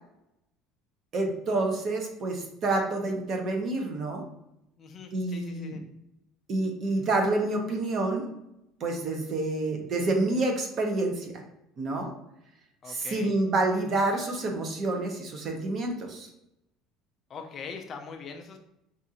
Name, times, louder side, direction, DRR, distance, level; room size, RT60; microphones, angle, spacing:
voice 1, 1.1-4.2 5.1-5.8 6.5-8.3 8.8-11.4 11.8-12.1 12.9-16.3, right 2 dB, 35° right, 3 dB, 0.7 m, -28 dB
voice 2, 4.8-5.8 12.8-13.3 17.3-18.6, left 5 dB, 30° left, 4 dB, 0.4 m, -42 dB
5.0 x 2.4 x 2.7 m, 0.84 s
cardioid pair, 165°, 0 cm